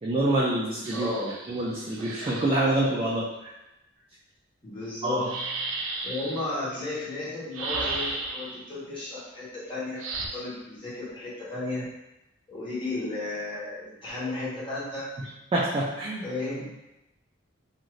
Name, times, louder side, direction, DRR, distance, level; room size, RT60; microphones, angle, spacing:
voice 1, 0.0-1.1 1.5-3.5 5.0-5.3 15.2-16.3, right 1 dB, 25° right, -5 dB, 0.3 m, -26 dB
sound 1, 0.8-2.6 5.2-6.4 7.5-8.6 10.0-10.3, right 3 dB, 85° right, 0.5 m, -34 dB
voice 2, 0.9-1.4 4.6-5.4 6.0-10.0 10.3-11.9 12.5-15.1 16.2-16.7, left 2 dB, 25° left, -9 dB, 1.1 m, -34 dB
2.6 x 2.5 x 3.1 m, 0.95 s
head